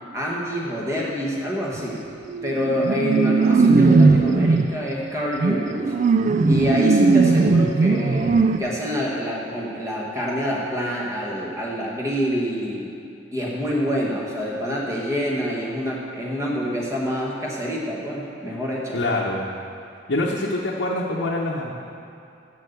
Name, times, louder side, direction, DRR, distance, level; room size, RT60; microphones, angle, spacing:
voice 1, 0.1-2.0 2.4-5.8 6.5-12.9 13.3-19.0, equal, 15° right, -4 dB, 1.5 m, -26 dB
sound 1, 1.7-2.0 2.3-4.7 5.4-8.6, right 4 dB, 40° right, 0.3 m, -18 dB
voice 2, 18.9-19.4 20.1-21.7, left 2 dB, 70° left, -4 dB, 0.9 m, -25 dB
7.9 x 7.0 x 6.8 m, 2.6 s
head